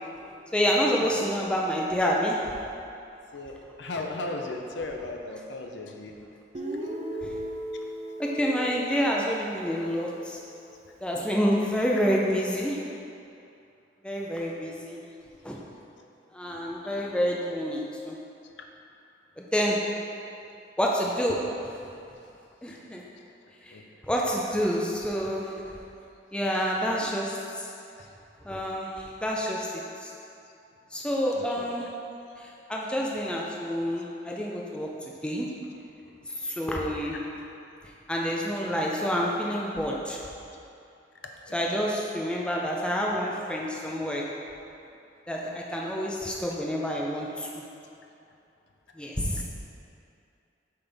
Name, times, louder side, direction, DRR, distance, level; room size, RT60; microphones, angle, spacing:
voice 1, 0.5-2.4 7.2-7.4 8.2-10.4 11.0-12.8 14.0-15.0 15.4-15.6 16.3-18.2 19.4-19.8 20.8-21.4 21.6-21.7 22.6-23.0 23.6-23.8 24.0-25.5 26.3-27.7 28.4-30.1 30.9-31.9 32.4-35.5 36.3-37.2 38.1-40.2 41.5-44.3 45.3-47.6 49.0-49.4, equal, 5° left, -3 dB, 0.5 m, -28 dB
voice 2, 3.3-6.1 16.9-17.0 23.7-23.8 31.3-31.6 41.5-41.6, left 2 dB, 70° left, 2 dB, 0.7 m, -36 dB
Guitar, 6.5-10.5, equal, 35° right, 0.7 m, -37 dB
7.8 x 5.5 x 3.4 m, 2.7 s
head